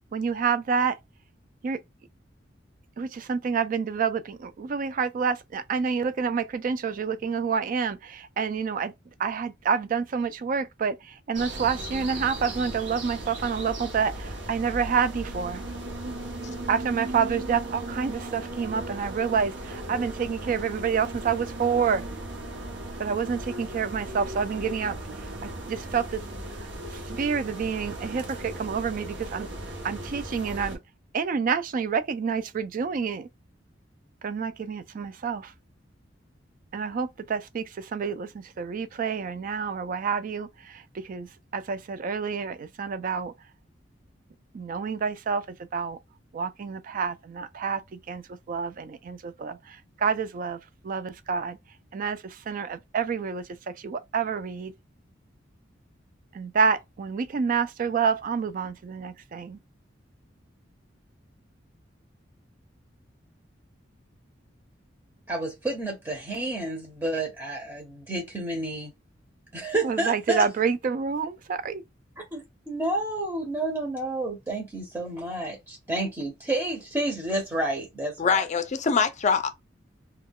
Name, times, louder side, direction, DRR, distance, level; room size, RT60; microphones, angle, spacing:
voice 1, 0.1-1.0 1.6-1.8 3.0-8.9 9.2-15.6 16.7-22.0 23.0-25.0 25.7-26.2 26.6-29.5 29.8-30.8 31.1-33.3 34.2-35.5 36.7-43.3 44.5-45.5 45.7-46.0 46.3-51.6 51.9-54.7 56.3-59.6 69.8-71.8, right 6 dB, 45° right, 0.3 m, -28 dB
sound 1, 11.3-30.8, right 1 dB, 75° right, 0.8 m, -37 dB
voice 2, 65.3-68.9 69.5-70.5 72.3-78.4, right 1 dB, 15° right, 0.7 m, -30 dB
voice 3, 78.2-79.5, left 5 dB, 40° left, 0.4 m, -23 dB
2.2 x 2.2 x 3.5 m
head